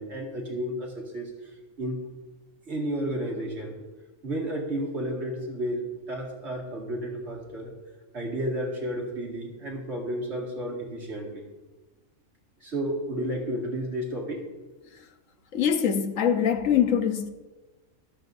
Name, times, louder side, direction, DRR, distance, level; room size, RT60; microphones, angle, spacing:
voice 1, 0.0-1.3 1.8-2.0 2.7-3.8 4.2-7.7 8.1-11.4 12.6-14.4, right 1 dB, 55° right, 2.4 m, -32 dB
voice 2, 15.5-17.3, left 8 dB, 75° left, 1.2 m, -23 dB
25.0 x 8.6 x 2.6 m
omnidirectional pair, 1.4 m